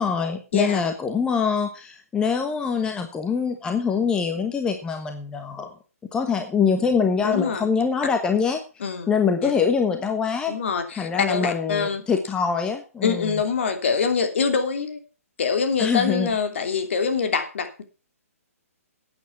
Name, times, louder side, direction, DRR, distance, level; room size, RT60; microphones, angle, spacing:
voice 1, 0.0-5.7 6.1-8.6 9.1-10.6 11.0-13.3 15.8-16.3, left 6 dB, 10° left, 5 dB, 1.2 m, -24 dB
voice 2, 7.2-7.7 8.8-9.2 9.4-9.5 10.5-12.0 13.0-15.0 15.4-17.8, left 5 dB, 50° left, 6 dB, 2.9 m, -24 dB
12.5 x 9.1 x 5.8 m, 0.34 s
figure-of-eight pair, 130°, 8 cm